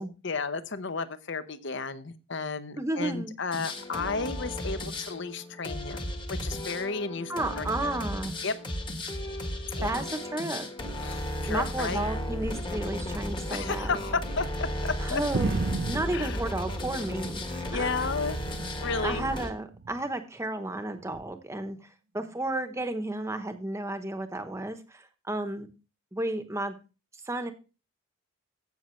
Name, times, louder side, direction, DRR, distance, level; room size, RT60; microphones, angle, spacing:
voice 1, 0.2-7.9 8.4-8.5 9.7-10.0 11.0-12.0 13.5-15.2 16.1-16.4 17.7-18.4 18.8-19.3, left 4 dB, 55° left, 12 dB, 0.8 m, -33 dB
voice 2, 2.8-3.3 7.3-8.4 9.8-10.7 11.5-14.0 15.0-15.5 15.9-18.1 19.0-21.8 22.1-25.7 26.1-26.8 27.2-27.5, right 2 dB, 15° right, 8 dB, 0.9 m, -32 dB
sound 1, 3.5-19.5, equal, 20° left, 1.3 m, -34 dB
sound 2, 15.3-17.6 17.9-18.9 19.7-20.1 21.1-21.3, right 3 dB, 50° right, 0.4 m, -34 dB
15.5 x 6.3 x 3.1 m, 0.32 s
head